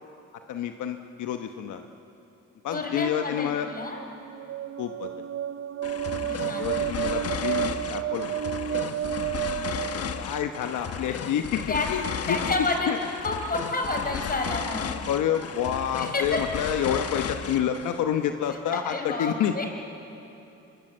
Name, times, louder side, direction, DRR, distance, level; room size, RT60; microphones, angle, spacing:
voice 1, 0.5-1.8 2.6-3.7 4.8-5.2 6.4-8.4 8.7-9.0 9.5-9.9 10.2-11.6 11.9-12.4 12.9-13.0 15.1-19.6, left 9 dB, 80° left, 6 dB, 1.1 m, -29 dB
voice 2, 2.7-4.0 6.2-6.8 11.7-11.9 12.3-14.9 16.0-16.4 18.8-19.7, left 2 dB, 30° left, 3 dB, 4.6 m, -30 dB
sound 1, 3.9-10.7, right 11 dB, 45° right, 0.7 m, -31 dB
sound 2, 5.8-18.0, left 7 dB, 50° left, 1.2 m, -34 dB
25.5 x 21.5 x 7.9 m, 2.9 s
cardioid pair, 90°, 30 cm